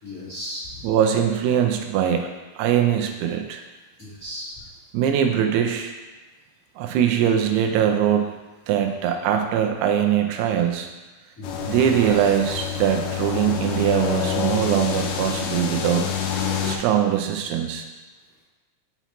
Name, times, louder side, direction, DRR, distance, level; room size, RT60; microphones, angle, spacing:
voice 1, 0.0-0.8 4.0-4.5 11.4-11.7, left 1 dB, 45° left, -12 dB, 1.1 m, -35 dB
voice 2, 0.8-2.3 2.6-3.6 4.9-5.9 6.8-8.3 8.7-10.9 11.7-16.1 16.6-17.9, right 9 dB, 85° right, 4 dB, 2.7 m, -22 dB
sound 1, 11.4-16.8, left 8 dB, 80° left, 2.4 m, -27 dB
6.8 x 5.7 x 3.0 m, 1.2 s
omnidirectional pair, 4.7 m